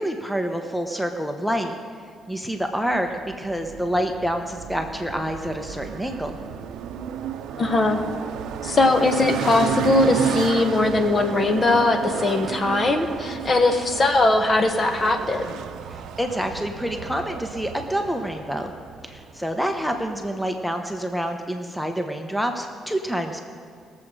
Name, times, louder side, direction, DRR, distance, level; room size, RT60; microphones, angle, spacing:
voice 1, 0.0-1.8 2.3-3.1 3.4-6.4 15.9-18.7 19.0-23.5, equal, ahead, 4 dB, 1.0 m, -27 dB
sound 1, 2.9-20.4, right 9 dB, 80° right, 0.6 m, -32 dB
voice 2, 7.6-8.0 8.6-15.5, left 2 dB, 35° left, 6 dB, 1.3 m, -20 dB
20.0 x 7.6 x 4.8 m, 2.2 s
cardioid pair, 90°, 0 cm